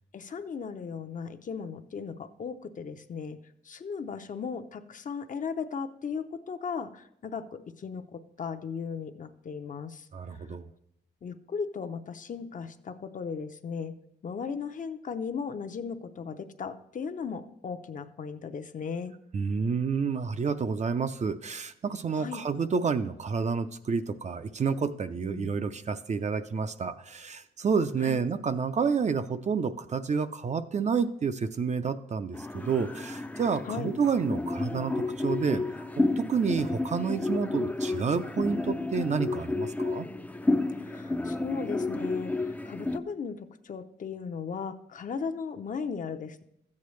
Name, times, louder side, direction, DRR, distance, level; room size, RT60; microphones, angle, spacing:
voice 1, 0.1-3.4 3.7-10.1 11.2-13.9 14.2-19.1 22.1-22.4 25.2-25.6 28.0-28.2 33.6-33.9 40.8-42.3 42.6-46.4, left 6 dB, 50° left, 8 dB, 0.6 m, -36 dB
voice 2, 10.1-10.7 19.3-34.9 35.2-35.6 36.2-40.1, right 5 dB, 40° right, 10 dB, 0.5 m, -29 dB
sound 1, 32.3-43.0, left 2 dB, 10° left, 0.4 m, -31 dB
13.5 x 8.4 x 3.2 m, 0.76 s
wide cardioid pair, 120°, 18 cm